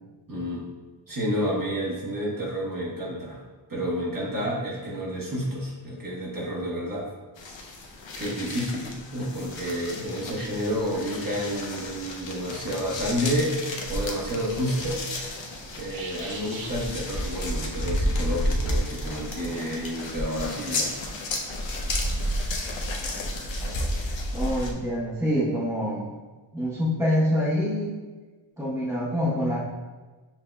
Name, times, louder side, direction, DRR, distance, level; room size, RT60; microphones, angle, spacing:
voice 1, 0.3-0.7 1.1-3.4 3.7-7.1 8.2-15.0 15.8-21.0, equal, 45° right, -5 dB, 1.2 m, -30 dB
sound 1, 7.4-24.7, left 1 dB, 70° left, 0.7 m, -31 dB
sound 2, 12.5-20.5, right 3 dB, 70° right, 0.7 m, -47 dB
voice 2, 24.3-26.1 26.5-28.0 28.6-29.6, equal, 5° right, -8 dB, 0.9 m, -26 dB
7.0 x 2.7 x 2.2 m, 1.3 s
wide cardioid pair, 130°, 47 cm